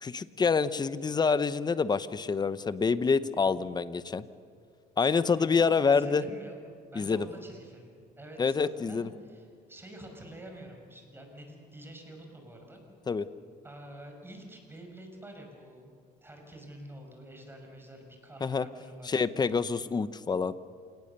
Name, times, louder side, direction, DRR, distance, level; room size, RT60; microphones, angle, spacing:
voice 1, 0.0-4.2 5.0-6.2 6.9-7.3 8.4-9.1 13.1-13.3 18.4-18.7 19.0-20.5, left 5 dB, 25° left, 14 dB, 0.9 m, -27 dB
voice 2, 5.2-6.6 6.9-12.8 13.6-15.9 16.2-19.1 19.4-19.5, right 1 dB, 15° right, 3 dB, 5.4 m, -48 dB
28.0 x 18.5 x 6.8 m, 2.1 s
cardioid pair, 110°, 17 cm